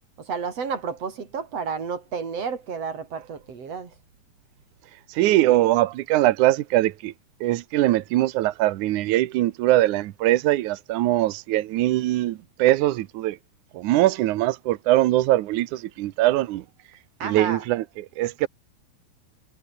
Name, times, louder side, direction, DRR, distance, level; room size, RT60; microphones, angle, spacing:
voice 1, 0.3-3.9 17.2-17.6, right 6 dB, 40° right, 4.3 m, -31 dB
voice 2, 5.1-7.1 7.4-13.4 13.7-16.6 17.2-18.5, right 15 dB, 85° right, 1.7 m, -22 dB
omnidirectional pair, 4.8 m